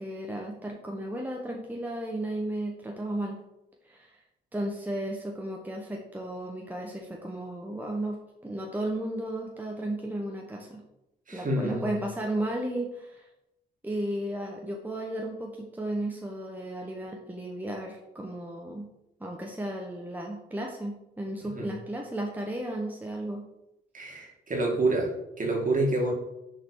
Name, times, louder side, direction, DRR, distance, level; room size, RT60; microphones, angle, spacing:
voice 1, 0.0-3.4 3.8-4.2 4.5-10.8 11.3-13.3 13.8-18.9 19.2-23.4, right 1 dB, 10° right, 0 dB, 1.1 m, -34 dB
voice 2, 11.3-12.0 21.6-21.7 23.9-25.1 25.4-26.1, right 2 dB, 40° right, -1 dB, 2.2 m, -27 dB
6.1 x 4.0 x 4.7 m, 0.89 s
supercardioid pair, 60°, 21 cm